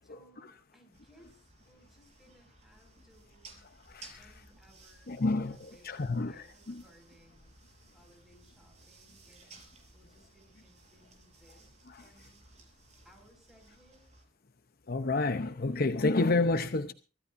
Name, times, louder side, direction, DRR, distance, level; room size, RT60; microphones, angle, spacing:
voice 1, 0.0-3.7 4.2-12.8 13.0-14.1, equal, ahead, 5.6 m, -63 dB
sound 1, 0.9-14.3, right 3 dB, 35° right, 5.0 m, -58 dB
voice 2, 3.9-4.3 5.1-6.8 11.9-12.0 14.9-16.9, left 3 dB, 50° left, 0.8 m, -30 dB
24.0 x 16.0 x 2.6 m
head